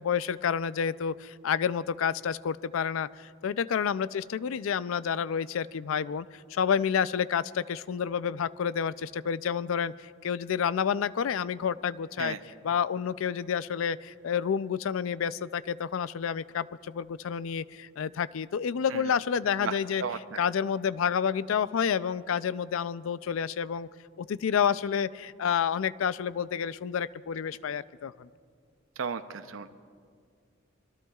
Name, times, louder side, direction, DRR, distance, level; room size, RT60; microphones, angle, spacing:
voice 1, 0.0-9.9 10.2-12.4 12.6-20.0 20.4-23.9 24.2-28.3, left 7 dB, 80° left, 17 dB, 0.4 m, -29 dB
voice 2, 19.6-20.2 29.0-29.7, right 5 dB, 80° right, 9 dB, 0.6 m, -34 dB
25.5 x 22.5 x 2.4 m, 2.1 s
head